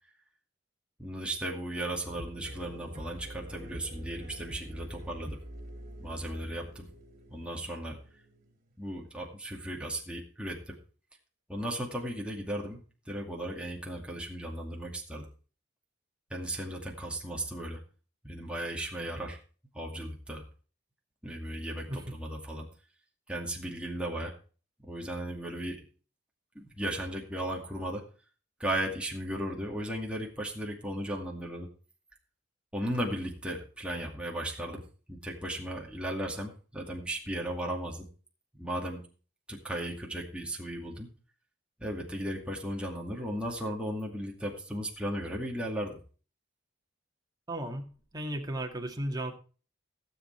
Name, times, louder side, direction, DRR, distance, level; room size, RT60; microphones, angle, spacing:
voice 1, 1.0-5.4 6.0-6.9 7.3-8.0 8.8-10.8 11.5-15.3 16.3-17.8 18.2-19.4 19.7-20.4 21.2-22.7 23.3-24.3 24.8-25.9 26.5-28.1 28.6-31.7 32.7-34.8 35.1-38.1 38.5-39.0 39.5-41.1 41.8-46.0, right 1 dB, 5° right, -1 dB, 2.3 m, -36 dB
sound 1, 2.0-9.0, right 1 dB, 50° right, 2.7 m, -46 dB
voice 2, 47.5-47.9 48.1-49.3, right 1 dB, 20° right, 2 dB, 2.3 m, -34 dB
17.0 x 8.1 x 4.4 m, 0.38 s
head